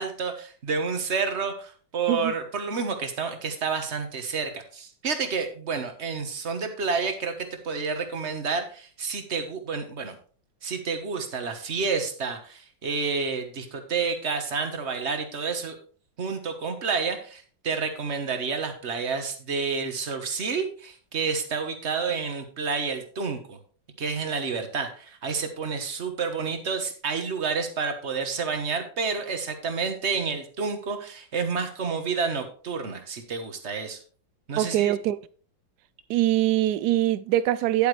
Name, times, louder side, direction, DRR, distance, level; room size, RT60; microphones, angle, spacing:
voice 1, 0.0-10.2 10.6-15.8 16.2-23.6 24.0-34.0 34.5-34.9, right 5 dB, 40° right, 1.4 m, -29 dB
voice 2, 34.6-35.2 36.1-37.9, right 13 dB, 75° right, 0.9 m, -23 dB
10.5 x 8.5 x 3.2 m
omnidirectional pair, 2.1 m